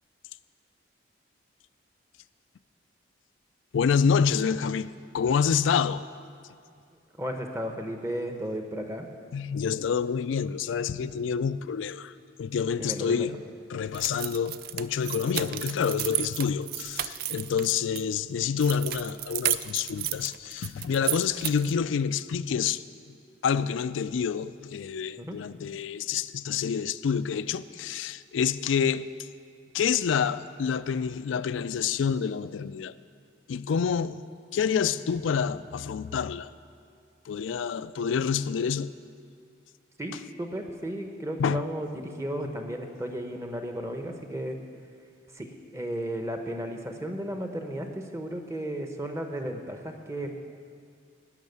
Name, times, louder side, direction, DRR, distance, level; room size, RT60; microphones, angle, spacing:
voice 1, 3.7-6.0 9.3-12.1 12.4-13.4 13.7-22.8 23.4-29.1 29.7-33.0 33.5-34.2 34.5-36.5 37.3-38.9 41.4-41.6, left 6 dB, 75° left, 15 dB, 0.4 m, -27 dB
voice 2, 7.2-9.1 12.8-13.3 25.2-25.4 40.0-44.6 45.3-50.3, right 1 dB, 15° right, 4 dB, 0.8 m, -34 dB
sound 1, 13.9-18.0 18.6-21.8, right 13 dB, 50° right, 0.3 m, -33 dB
12.0 x 6.3 x 9.3 m, 2.3 s
head